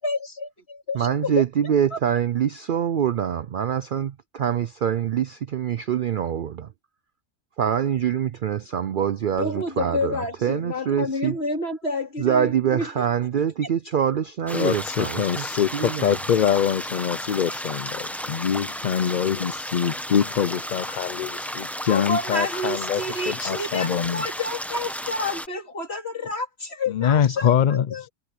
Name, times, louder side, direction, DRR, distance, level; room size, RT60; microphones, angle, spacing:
voice 1, 0.0-1.3 1.9-2.0 9.4-13.1 21.9-28.1, left 2 dB, 45° left, 3.6 m, -29 dB
voice 2, 0.9-6.7 7.6-11.4 12.2-15.4 15.7-16.2, right 9 dB, 85° right, 0.4 m, -25 dB
voice 3, 14.5-24.2 26.9-27.9, left 9 dB, 70° left, 0.4 m, -24 dB
sound 1, 14.5-25.5, equal, ahead, 0.8 m, -33 dB
omnidirectional pair, 1.5 m